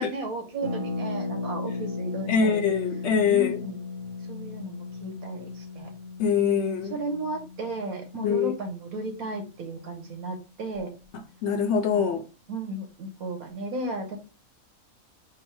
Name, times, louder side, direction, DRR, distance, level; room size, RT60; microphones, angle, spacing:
voice 1, 0.0-2.6 3.3-3.8 4.3-5.9 6.9-10.9 11.9-12.1 12.5-14.2, right 2 dB, 85° right, 1.5 m, -34 dB
Harp, 0.6-10.2 10.5-10.6 10.7-11.1, left 3 dB, 35° right, 0.5 m, -36 dB
voice 2, 2.3-3.6 6.2-6.9 8.2-8.5 11.4-12.2, left 6 dB, 65° left, 0.7 m, -23 dB
4.7 x 2.1 x 4.5 m
omnidirectional pair, 1.5 m